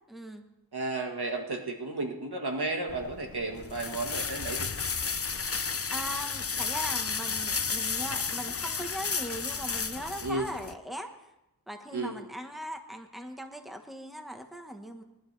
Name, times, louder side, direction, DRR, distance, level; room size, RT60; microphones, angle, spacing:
voice 1, 0.1-0.4 5.9-11.1 11.7-15.0, equal, ahead, 4 dB, 1.4 m, -39 dB
voice 2, 0.7-4.7 10.2-10.5 11.9-12.2, right 2 dB, 85° right, 2 dB, 1.7 m, -33 dB
sound 1, 2.9-10.7, left 5 dB, 40° left, 0.6 m, -33 dB
20.5 x 11.5 x 3.4 m, 0.89 s
wide cardioid pair, 50°, 38 cm